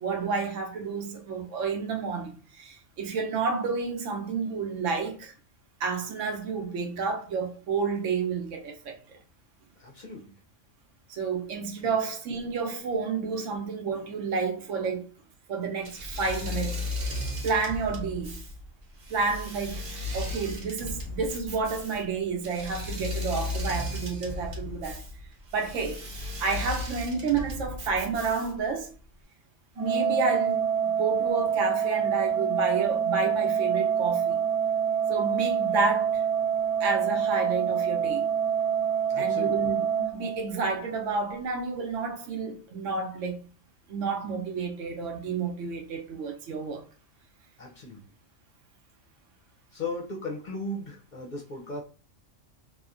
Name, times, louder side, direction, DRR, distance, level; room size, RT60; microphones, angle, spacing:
voice 1, 0.0-5.3 5.8-9.0 11.1-15.1 15.5-17.1 17.4-18.4 19.1-19.8 20.1-25.0 25.5-26.1 26.4-28.9 29.8-30.6 30.9-34.4 35.1-36.2 36.8-38.3 39.2-39.8 40.1-43.4 43.9-46.8, right 4 dB, 80° right, 1.0 m, -30 dB
voice 2, 9.8-10.3 11.8-11.9 39.1-39.6 47.6-48.0 49.7-51.8, left 2 dB, 50° left, 0.6 m, -37 dB
Engine / Mechanisms, 15.8-28.7, left 2 dB, 55° right, 0.9 m, -35 dB
Organ, 29.8-40.8, right 7 dB, 25° right, 0.4 m, -26 dB
2.8 x 2.3 x 2.4 m
omnidirectional pair, 1.3 m